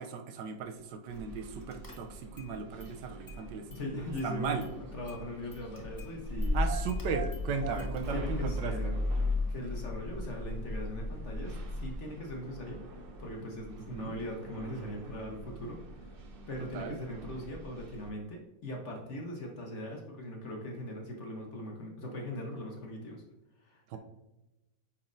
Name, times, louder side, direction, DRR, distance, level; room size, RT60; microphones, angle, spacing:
voice 1, 0.0-3.7 4.2-4.7 6.5-8.7 13.7-14.2 16.7-17.0 23.9-24.0, right 5 dB, 80° right, 5 dB, 1.3 m, -37 dB
Car / Engine starting, 1.1-1.4 1.7-2.5 2.8-3.9 4.2-11.9, left 2 dB, 30° left, 0.3 m, -35 dB
sound 1, 1.1-18.1, right 2 dB, 60° right, 0.6 m, -47 dB
voice 2, 3.7-6.6 7.5-9.1 9.5-12.8 13.2-15.8 16.5-23.2 23.6-24.0, equal, 45° left, 0 dB, 1.1 m, -40 dB
8.6 x 4.3 x 2.6 m, 1.0 s
omnidirectional pair, 1.9 m